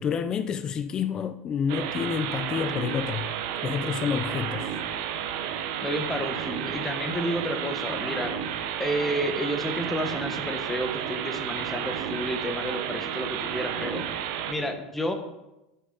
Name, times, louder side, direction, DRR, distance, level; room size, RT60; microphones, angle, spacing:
voice 1, 0.0-3.3 3.6-4.8, left 7 dB, 35° left, 0.5 m, -29 dB
sound 1, 1.7-14.5, right 9 dB, 65° right, 1.0 m, -32 dB
voice 2, 5.8-8.3 8.8-14.1 14.5-15.1, equal, 10° left, 1.5 m, -30 dB
10.5 x 6.5 x 4.1 m
hypercardioid pair, 85°, 2 cm